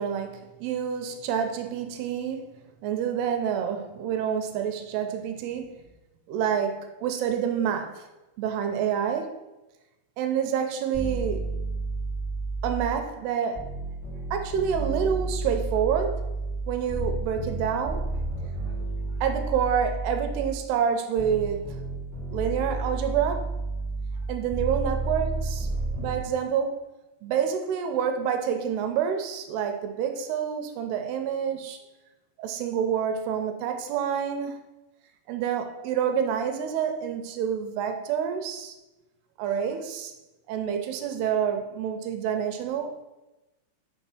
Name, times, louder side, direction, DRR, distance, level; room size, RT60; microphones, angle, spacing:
voice 1, 0.0-5.8 6.3-8.0 8.4-9.3 10.2-11.5 12.6-13.7 14.3-16.2 16.7-18.0 18.4-18.5 19.2-21.8 22.3-23.5 24.3-25.7 26.0-26.7 27.2-31.8 32.4-34.6 35.3-38.7 39.4-40.1 40.5-43.0, right 8 dB, 85° right, 6 dB, 2.7 m, -28 dB
sound 1, 10.9-13.1 13.5-20.7 21.2-26.2, right 3 dB, 90° left, 0.4 m, -31 dB
6.1 x 4.5 x 5.8 m, 1.0 s
omnidirectional pair, 4.8 m